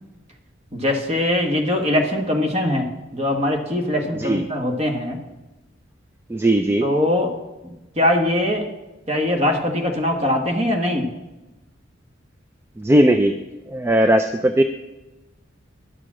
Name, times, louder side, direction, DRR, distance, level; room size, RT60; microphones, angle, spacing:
voice 1, 0.7-5.2 6.8-7.3 7.6-8.7 9.1-11.0, left 1 dB, 35° right, 2 dB, 1.4 m, -22 dB
voice 2, 6.3-6.9 12.8-13.4 13.7-14.6, right 1 dB, 15° right, 7 dB, 0.3 m, -18 dB
11.0 x 6.8 x 6.1 m, 1.0 s
head